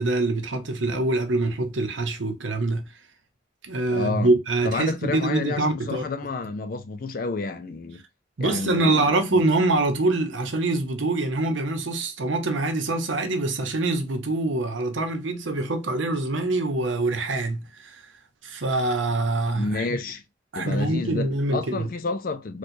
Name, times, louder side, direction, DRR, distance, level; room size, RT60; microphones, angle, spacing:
voice 1, 0.0-2.9 3.6-6.0 8.4-18.0 18.4-19.9 20.5-21.9, right 2 dB, 80° right, 0.8 m, -24 dB
voice 2, 3.9-4.3 4.6-8.0 8.4-9.5 19.5-20.2 20.6-22.6, left 3 dB, 45° left, 0.4 m, -30 dB
4.5 x 2.2 x 2.6 m
head